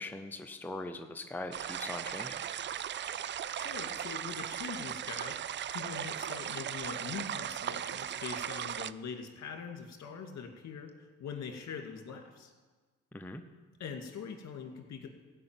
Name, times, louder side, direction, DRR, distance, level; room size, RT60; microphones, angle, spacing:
voice 1, 0.0-2.4 13.1-13.4, left 2 dB, 5° left, 6 dB, 0.7 m, -41 dB
sound 1, 1.5-8.9, right 10 dB, 40° right, 0.4 m, -37 dB
voice 2, 3.5-5.3 5.7-12.5 13.8-15.1, left 6 dB, 60° left, 4 dB, 2.3 m, -43 dB
16.0 x 5.4 x 9.0 m, 1.4 s
cardioid pair, 90°, 30 cm